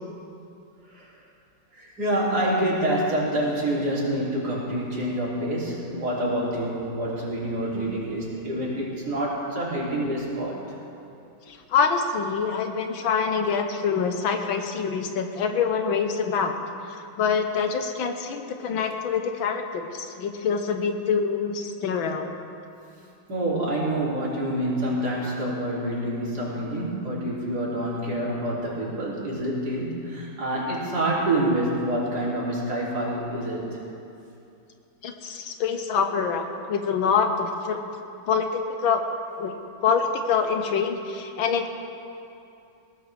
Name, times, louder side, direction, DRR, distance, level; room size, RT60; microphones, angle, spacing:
voice 1, 1.8-10.6 23.3-33.8, right 1 dB, 50° right, -6 dB, 3.6 m, -27 dB
voice 2, 11.5-16.5 17.2-22.3 35.0-37.8 38.3-39.0 39.4-39.5 39.8-41.7, left 6 dB, 75° left, 5 dB, 1.7 m, -25 dB
20.0 x 16.5 x 3.4 m, 2.7 s
omnidirectional pair, 2.2 m